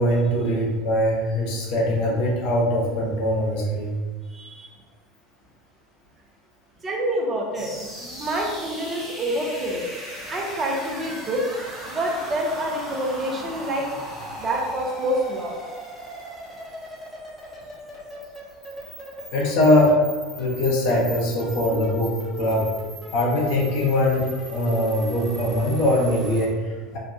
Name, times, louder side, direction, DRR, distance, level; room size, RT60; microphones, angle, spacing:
voice 1, 0.0-3.9 19.3-20.0 20.4-22.7 23.1-27.0, left 1 dB, 60° left, -2 dB, 0.8 m, -22 dB
voice 2, 4.3-4.7 6.8-7.7 8.2-9.9 10.3-11.5 11.9-13.9 14.4-15.6, right 1 dB, 30° right, 0 dB, 0.7 m, -27 dB
sound 1, 7.5-26.5, right 1 dB, 10° right, 0.9 m, -38 dB
3.1 x 2.2 x 2.6 m, 1.3 s
hypercardioid pair, 75°, 0 cm